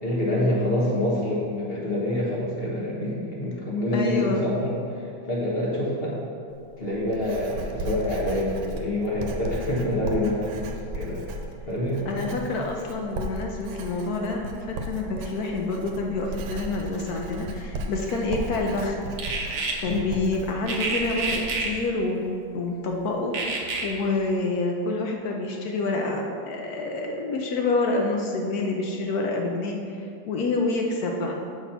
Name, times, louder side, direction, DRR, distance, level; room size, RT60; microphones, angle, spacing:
voice 1, 0.0-6.1 6.8-11.2 11.7-12.5 19.8-20.1, left 1 dB, 35° left, -5 dB, 1.2 m, -27 dB
voice 2, 3.9-4.4 12.1-19.0 19.8-31.4, left 3 dB, 75° left, 1 dB, 0.8 m, -28 dB
Writing, 6.5-21.9, right 1 dB, 85° right, 1.5 m, -36 dB
sound 1, 19.2-19.7 20.7-21.7 23.3-23.8, right 4 dB, 55° right, 1.0 m, -28 dB
7.0 x 4.2 x 5.6 m, 2.4 s
omnidirectional pair, 2.2 m